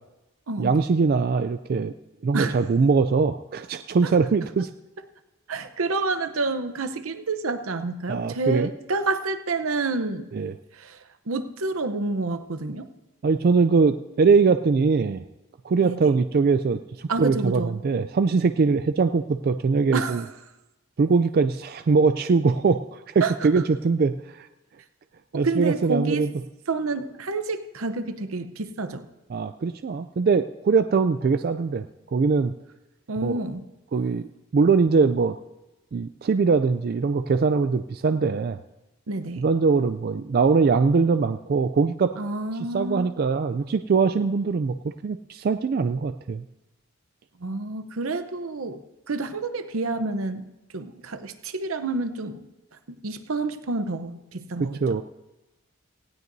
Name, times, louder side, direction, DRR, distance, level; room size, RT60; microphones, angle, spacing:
voice 1, 0.6-1.9 2.2-4.7 8.1-8.7 10.3-10.5 13.2-15.2 15.6-20.2 21.0-24.5 25.3-26.3 29.3-31.9 32.1-32.5 33.2-33.3 33.9-34.3 34.5-35.4 35.9-38.6 39.4-42.1 42.7-46.4 54.6-55.0, right 4 dB, 45° right, 10 dB, 0.3 m, -22 dB
voice 2, 5.5-10.3 10.7-11.0 11.3-12.9 15.8-16.0 17.1-17.8 19.9-20.3 23.2-23.5 25.3-26.3 26.7-29.1 33.1-33.6 39.1-39.4 42.2-43.1 47.4-50.4 50.7-52.5 53.0-55.0, right 3 dB, 80° right, 10 dB, 0.8 m, -29 dB
18.5 x 16.5 x 2.7 m, 1.0 s
head